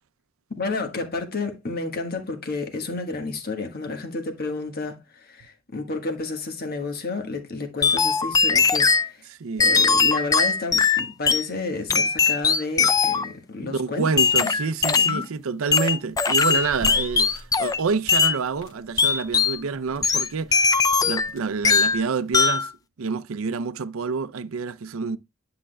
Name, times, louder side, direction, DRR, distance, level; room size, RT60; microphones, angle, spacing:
voice 1, 0.5-9.2 9.6-14.1 14.4-14.5 14.9-15.3, left 3 dB, 50° left, 1.4 m, -31 dB
sound 1, 7.8-9.1 9.6-11.5 11.9-13.3 14.2-15.2 15.7-17.8 18.1-18.4 19.0-19.6 20.0-21.3 21.6-22.0 22.3-22.7, left 5 dB, 20° left, 0.3 m, -20 dB
voice 2, 9.3-9.8 13.6-20.7 21.0-22.7 23.0-25.2, right 5 dB, 85° right, 0.5 m, -28 dB
sound 2, 16.6-22.1, equal, 80° left, 3.3 m, -43 dB
10.0 x 5.8 x 2.2 m
head